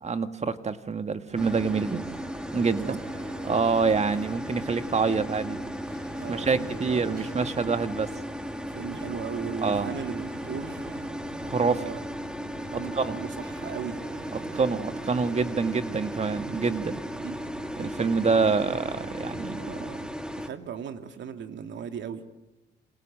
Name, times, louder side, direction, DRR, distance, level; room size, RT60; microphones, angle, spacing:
voice 1, 0.0-2.0 2.5-3.0 3.4-5.6 6.3-8.1 9.6-9.9 11.4-11.8 12.9-13.2 14.5-17.0 17.8-19.6, right 4 dB, 35° right, 9 dB, 1.9 m, -26 dB
sound 1, 1.3-20.1, right 3 dB, 50° right, 7.7 m, -52 dB
sound 2, 1.4-20.5, equal, 5° right, 2.7 m, -36 dB
sound 3, 2.5-5.7 6.0-9.3 9.7-12.8 13.1-16.4, right 4 dB, 85° right, 5.3 m, -50 dB
voice 2, 6.2-7.1 8.7-10.8 11.6-12.0 12.6-14.0 17.2-17.3 19.6-20.0 20.3-22.2, right 7 dB, 65° right, 7 dB, 2.6 m, -37 dB
28.5 x 26.5 x 7.6 m, 1.0 s
cardioid pair, 90°, 20 cm